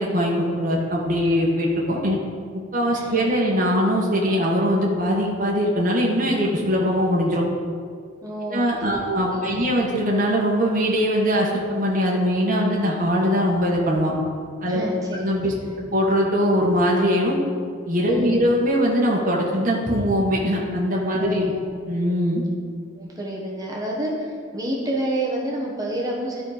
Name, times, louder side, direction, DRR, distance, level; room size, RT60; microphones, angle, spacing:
voice 1, 0.0-2.2 2.7-7.4 8.5-14.1 14.6-14.8 15.2-15.5 15.9-17.4 17.9-21.5 21.9-22.4, equal, 40° right, -2 dB, 1.4 m, -21 dB
voice 2, 2.9-3.3 8.2-9.7 14.7-15.2 15.6-15.8 18.1-18.4 21.2-21.6 23.0-26.4, right 1 dB, 20° right, -3 dB, 1.2 m, -29 dB
12.0 x 4.3 x 5.0 m, 2.1 s
head